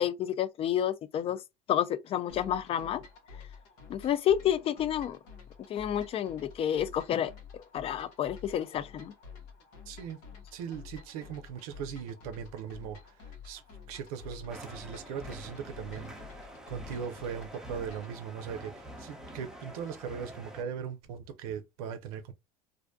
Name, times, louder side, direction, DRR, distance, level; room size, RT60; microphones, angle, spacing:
voice 1, 0.0-1.4 1.7-3.0 3.9-5.2 5.7-9.1, left 10 dB, 30° left, 0.3 m, -30 dB
sound 1, 2.3-18.2, left 6 dB, 70° left, 1.0 m, -50 dB
voice 2, 9.9-10.2 10.5-13.6 13.9-22.3, right 7 dB, 80° right, 0.5 m, -39 dB
sound 2, 14.5-20.6, equal, ahead, 0.7 m, -46 dB
2.5 x 2.1 x 2.5 m
supercardioid pair, 105°, 18 cm